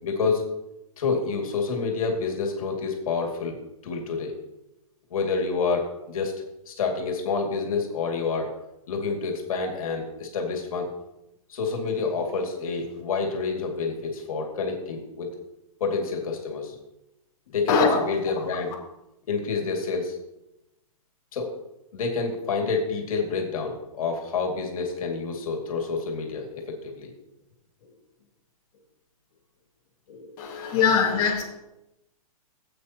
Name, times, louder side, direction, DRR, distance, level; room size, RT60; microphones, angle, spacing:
voice 1, 0.0-0.4 1.0-3.5 3.8-4.3 5.1-6.4 6.7-8.5 8.9-10.9 11.5-15.3 15.8-16.7 17.5-18.7 19.3-20.2 21.3-21.5 21.9-27.1 30.1-30.3, left 4 dB, 70° left, 2 dB, 2.4 m, -28 dB
voice 2, 17.7-18.0 30.4-31.4, left 6 dB, 35° left, -3 dB, 2.0 m, -22 dB
14.5 x 8.5 x 3.0 m, 0.93 s
hypercardioid pair, 165°, 19 cm